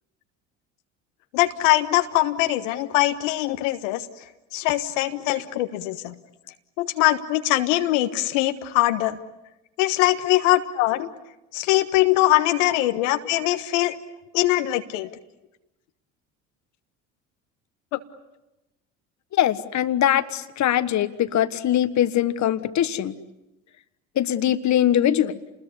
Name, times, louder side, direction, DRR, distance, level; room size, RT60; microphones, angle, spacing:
voice 1, 1.3-4.0 4.5-6.1 6.8-9.2 9.8-11.1 11.5-14.0 14.3-15.1 17.9-18.0, left 16 dB, 80° left, 8 dB, 1.4 m, -22 dB
voice 2, 19.3-23.1 24.2-25.4, left 11 dB, 45° left, 12 dB, 1.5 m, -22 dB
28.5 x 21.0 x 9.9 m, 0.96 s
hypercardioid pair, 70°, 38 cm